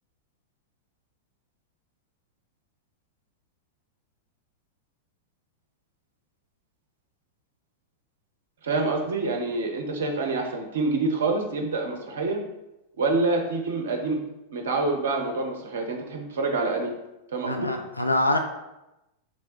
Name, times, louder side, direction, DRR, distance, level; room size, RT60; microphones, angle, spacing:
voice 1, 8.6-12.4 13.0-14.2 14.5-16.9 17.3-17.7, right 3 dB, 65° right, 2 dB, 0.7 m, -27 dB
voice 2, 17.5-18.4, left 2 dB, 85° left, 5 dB, 0.3 m, -24 dB
3.4 x 3.0 x 4.2 m, 0.93 s
figure-of-eight pair, 90°, 0 cm